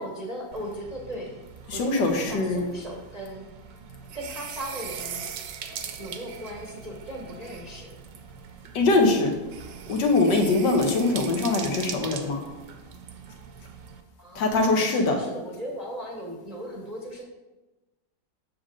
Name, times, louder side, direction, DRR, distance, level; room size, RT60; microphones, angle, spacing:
voice 1, 0.0-1.4 1.7-3.5 4.1-5.3 6.0-8.0 14.2-17.2, equal, 30° right, -2 dB, 0.8 m, -37 dB
sound 1, 0.5-14.0, right 7 dB, 75° right, 1.3 m, -41 dB
voice 2, 1.7-2.7 8.7-9.4 9.9-12.4 14.4-15.2, left 3 dB, 75° left, 2 dB, 1.8 m, -22 dB
7.9 x 6.4 x 3.7 m, 1.1 s
omnidirectional pair, 2.0 m